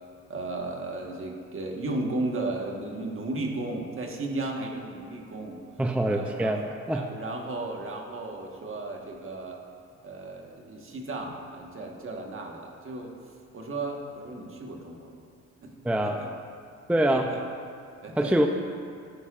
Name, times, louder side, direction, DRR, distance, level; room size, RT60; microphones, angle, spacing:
voice 1, 0.3-5.6 6.1-6.6 6.9-9.6 10.0-13.1 13.5-15.2 15.6-15.7 16.0-16.3 17.1-17.4 18.0-18.5, right 2 dB, 45° right, 1 dB, 1.5 m, -35 dB
voice 2, 5.8-7.1 15.8-16.2 16.9-17.3 18.2-18.5, right 1 dB, 5° right, 4 dB, 0.5 m, -24 dB
13.0 x 9.5 x 2.5 m, 2.4 s
cardioid pair, 90°, 30 cm